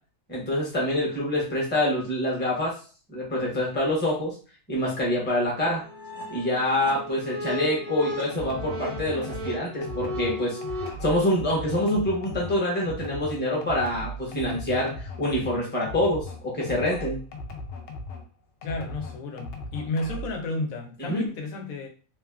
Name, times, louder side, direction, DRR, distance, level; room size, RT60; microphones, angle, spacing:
voice 1, 0.3-2.7 3.1-4.4 4.7-5.8 6.3-10.6 11.0-17.2 21.0-21.3, left 1 dB, 10° left, -3 dB, 0.8 m, -26 dB
sound 1, 5.6-10.9, left 1 dB, 80° right, 1.1 m, -35 dB
sound 2, 8.3-18.3 18.6-20.4, left 2 dB, 65° left, 0.8 m, -38 dB
voice 2, 18.6-21.9, left 2 dB, 85° left, 3 dB, 1.1 m, -32 dB
2.9 x 2.3 x 2.3 m, 0.37 s
omnidirectional pair, 1.4 m